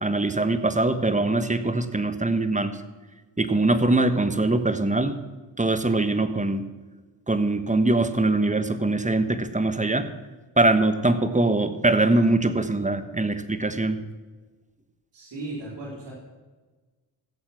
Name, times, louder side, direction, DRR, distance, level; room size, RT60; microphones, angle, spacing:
voice 1, 0.0-2.8 3.4-5.2 5.6-6.7 7.3-10.1 10.6-14.0, right 2 dB, 15° right, 10 dB, 1.3 m, -22 dB
voice 2, 15.1-16.1, right 2 dB, 75° right, -4 dB, 4.0 m, -36 dB
16.0 x 7.2 x 6.1 m, 1.3 s
supercardioid pair, 40°, 43 cm